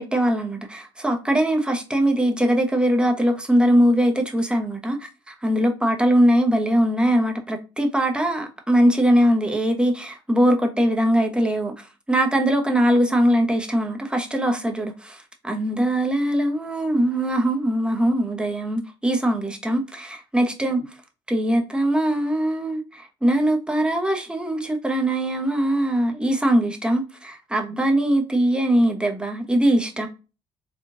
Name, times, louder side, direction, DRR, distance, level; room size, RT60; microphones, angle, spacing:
voice 1, 0.0-11.7 12.1-20.8 21.3-30.1, right 1 dB, 10° right, 0.9 m, -21 dB
3.6 x 2.4 x 2.5 m
supercardioid pair, 70°, 12 cm